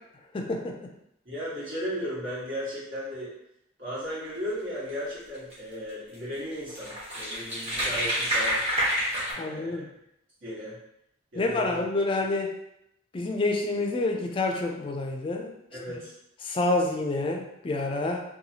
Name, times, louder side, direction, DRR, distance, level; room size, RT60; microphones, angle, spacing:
voice 1, 0.3-0.8 9.4-9.9 11.4-12.6 13.1-15.5 15.9-16.0 16.4-18.2, left 2 dB, 25° left, 2 dB, 0.3 m, -28 dB
voice 2, 1.2-3.3 3.8-8.6 9.3-9.9 10.4-10.8 11.3-11.8 15.7-16.1, equal, 65° right, -9 dB, 1.4 m, -35 dB
sound 1, 5.3-5.5 6.1-6.2 6.5-9.3, equal, 30° right, 0.9 m, -28 dB
2.8 x 2.3 x 2.8 m, 0.81 s
head